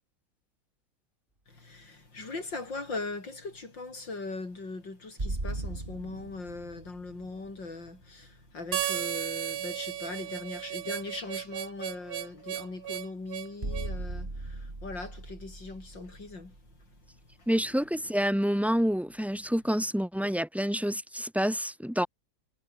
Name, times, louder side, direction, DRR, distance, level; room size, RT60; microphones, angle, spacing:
voice 1, 1.5-17.5, left 3 dB, 80° left, 6.1 m, -40 dB
sound 1, 5.2-9.0 12.6-12.7 13.6-17.5, right 2 dB, 25° right, 3.7 m, -39 dB
Harmonica, 8.7-13.9, right 11 dB, 65° right, 1.3 m, -35 dB
voice 2, 17.5-22.1, equal, ahead, 1.1 m, -28 dB
omnidirectional pair, 2.0 m